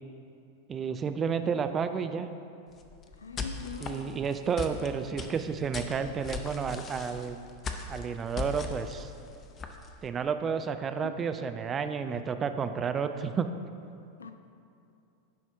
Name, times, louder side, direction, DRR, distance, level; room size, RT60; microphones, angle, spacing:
voice 1, 0.7-2.3 3.8-7.4 7.9-9.1 10.0-13.5, right 6 dB, 25° right, 9 dB, 0.3 m, -31 dB
sound 1, 2.7-10.1, left 4 dB, 25° left, 0.6 m, -39 dB
voice 2, 3.2-4.1 11.0-11.2 14.2-14.3, left 7 dB, 70° left, 7 dB, 0.5 m, -42 dB
10.5 x 4.3 x 4.5 m, 2.6 s
figure-of-eight pair, 90°, 0 cm